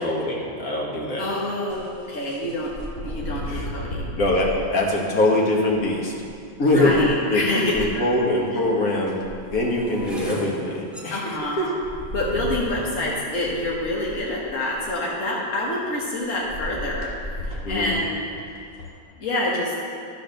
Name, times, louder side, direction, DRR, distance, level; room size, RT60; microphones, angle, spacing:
voice 1, 0.0-1.3 3.5-3.7 4.2-6.1 6.6-7.0 7.3-9.2 9.5-11.8 17.6-17.9, left 1 dB, 80° left, -2 dB, 1.9 m, -23 dB
voice 2, 1.2-4.1 6.7-8.0 11.1-11.7 12.1-17.1 17.4-18.2 19.2-19.7, left 1 dB, 65° left, -5 dB, 1.8 m, -27 dB
sound 1, 1.7-4.6 5.6-7.9 8.6-8.7 8.8-10.3 11.4-11.5 11.8-15.0 16.5-18.9, left 1 dB, 45° left, 1.6 m, -35 dB
sound 2, 7.8-7.9 8.6-14.8 15.5-15.8 16.1-16.5, left 1 dB, ahead, 1.0 m, -39 dB
12.0 x 4.8 x 6.4 m, 2.4 s
omnidirectional pair, 1.5 m